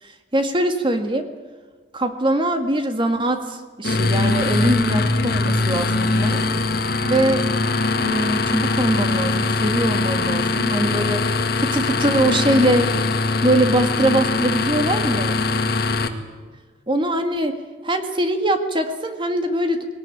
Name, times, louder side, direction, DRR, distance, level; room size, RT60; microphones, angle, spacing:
voice 1, 0.0-1.3 1.9-6.4 7.0-7.5 8.0-12.9 13.4-15.4 16.9-17.6 17.8-19.9, right 1 dB, 30° right, 7 dB, 1.8 m, -22 dB
sound 1, 3.8-16.1, left 3 dB, 60° left, 1.9 m, -21 dB
19.5 x 19.0 x 10.0 m, 1.4 s
head